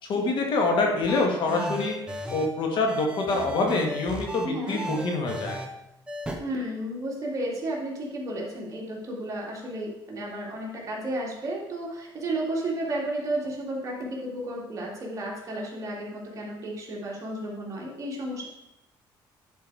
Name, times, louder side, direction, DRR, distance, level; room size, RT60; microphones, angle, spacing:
voice 1, 0.0-2.0 2.3-5.6, left 3 dB, 60° left, 1 dB, 1.9 m, -26 dB
sound 1, 1.0-2.5 2.9-5.7 6.1-6.3, right 1 dB, 10° right, 1.0 m, -34 dB
voice 2, 4.4-4.8 6.4-18.5, right 1 dB, 35° right, -3 dB, 2.5 m, -33 dB
9.7 x 4.7 x 4.8 m, 0.88 s
cardioid pair, 120°, 9 cm